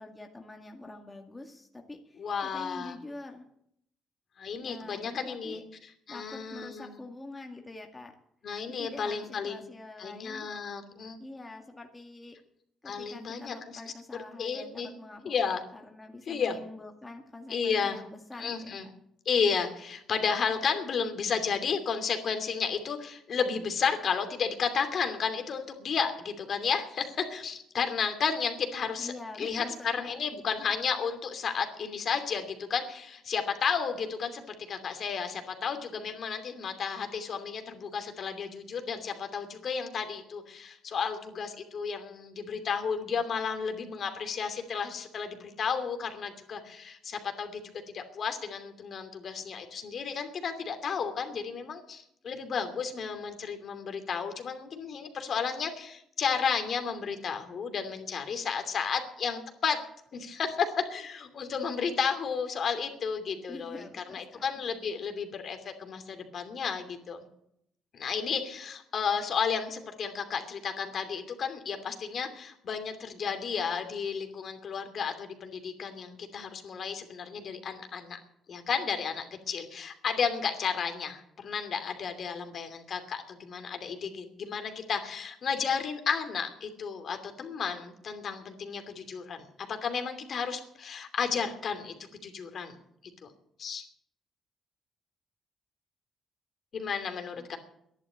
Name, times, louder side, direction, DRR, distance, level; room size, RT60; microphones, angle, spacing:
voice 1, 0.0-3.5 4.6-5.6 6.1-8.1 8.7-10.5 11.2-12.4 12.8-15.3 15.7-18.7 29.0-30.4 63.5-64.5 97.4-97.6, left 2 dB, 15° left, 2 dB, 2.0 m, -45 dB
voice 2, 2.2-3.0 4.4-7.0 8.4-9.6 10.0-11.2 12.8-13.8 14.4-14.9 15.2-15.6 16.3-16.6 17.5-18.0 18.4-18.9 19.2-29.1 29.4-47.6 47.9-59.8 60.1-67.2 67.9-78.2 78.5-91.9 92.2-92.8 93.2-93.3 93.6-93.8 96.7-97.6, left 6 dB, 55° left, 6 dB, 2.7 m, -32 dB
12.0 x 11.0 x 8.7 m, 0.75 s
cardioid pair, 90°, 0 cm